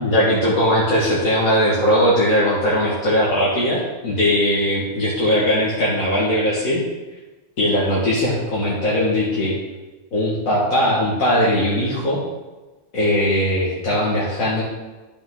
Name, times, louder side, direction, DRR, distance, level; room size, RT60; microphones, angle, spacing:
voice 1, 0.0-6.8 7.6-9.6 10.1-12.2 12.9-14.6, equal, 65° left, -7 dB, 2.3 m, -19 dB
13.0 x 6.0 x 3.9 m, 1.2 s
omnidirectional pair, 1.5 m